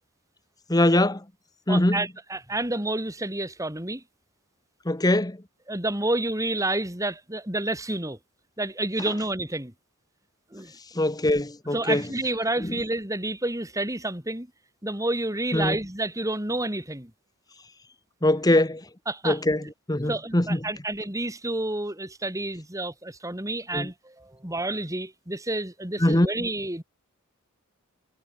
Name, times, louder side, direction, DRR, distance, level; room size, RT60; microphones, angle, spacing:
voice 1, 0.7-1.2 1.7-2.1 4.8-5.4 10.9-12.0 12.6-12.7 15.5-15.8 18.2-18.8 19.2-20.6 23.7-23.9 26.0-26.3, left 1 dB, 15° left, 1.2 m, -22 dB
voice 2, 1.7-4.0 5.7-8.2 8.6-9.7 10.5-10.8 11.7-14.5 14.8-17.1 19.1-19.4 20.1-26.8, right 2 dB, 15° right, 3.6 m, -29 dB
head